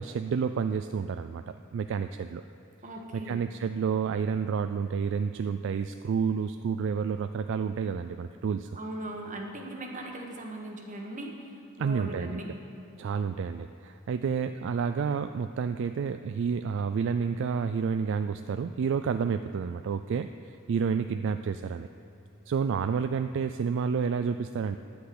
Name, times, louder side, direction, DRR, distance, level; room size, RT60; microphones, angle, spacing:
voice 1, 0.0-2.4 3.1-8.7 11.8-12.4 13.0-21.9 22.5-24.8, right 6 dB, 60° right, 9 dB, 0.3 m, -30 dB
voice 2, 2.8-3.4 8.7-12.5, right 1 dB, 35° right, 1 dB, 1.4 m, -39 dB
10.0 x 8.6 x 7.8 m, 2.9 s
head